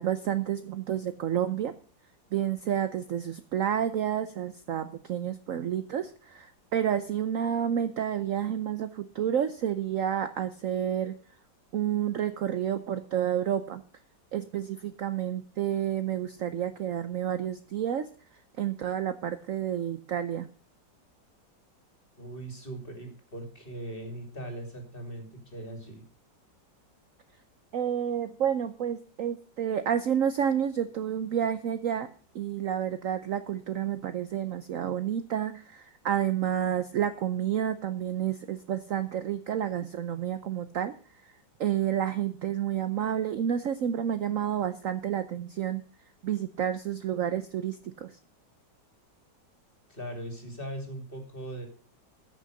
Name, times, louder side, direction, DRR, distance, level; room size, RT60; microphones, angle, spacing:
voice 1, 0.0-1.7 2.3-11.1 11.7-13.8 14.3-18.1 18.6-20.5 27.7-32.1 32.3-40.9 41.6-45.8 46.2-48.1, right 9 dB, 60° right, 11 dB, 0.9 m, -30 dB
voice 2, 22.2-26.0 49.9-51.7, right 1 dB, 30° left, 4 dB, 3.0 m, -40 dB
14.0 x 6.5 x 6.5 m, 0.40 s
omnidirectional pair, 2.0 m